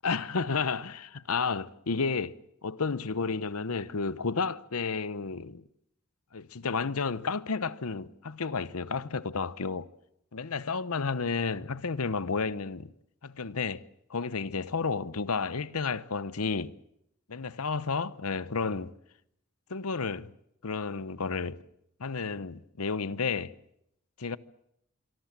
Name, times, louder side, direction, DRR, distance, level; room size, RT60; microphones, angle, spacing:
voice 1, 0.0-2.3 2.6-5.6 6.3-9.9 10.3-12.9 13.2-13.8 14.1-16.8 17.3-18.9 19.7-20.3 20.6-21.6 22.0-23.5 24.2-24.4, left 4 dB, 90° left, 0.9 m, -31 dB
26.5 x 23.5 x 7.4 m
head